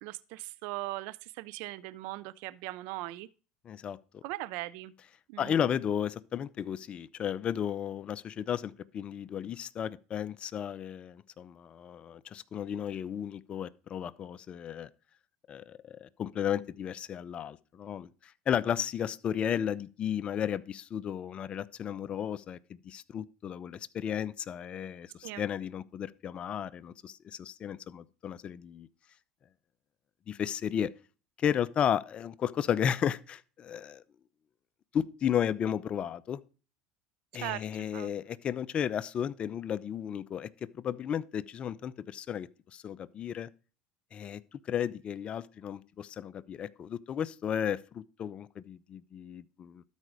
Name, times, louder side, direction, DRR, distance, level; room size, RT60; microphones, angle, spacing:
voice 1, 0.0-3.3 4.2-4.9 5.3-5.5 25.2-25.4 37.3-37.7 37.9-38.1, right 18 dB, 70° right, 0.4 m, -39 dB
voice 2, 3.6-4.2 5.4-14.9 15.5-28.9 30.3-30.9 31.4-34.0 34.9-36.4 37.3-43.5 44.1-49.8, left 9 dB, 40° left, 0.6 m, -34 dB
12.5 x 5.1 x 4.9 m
supercardioid pair, 100°, 3 cm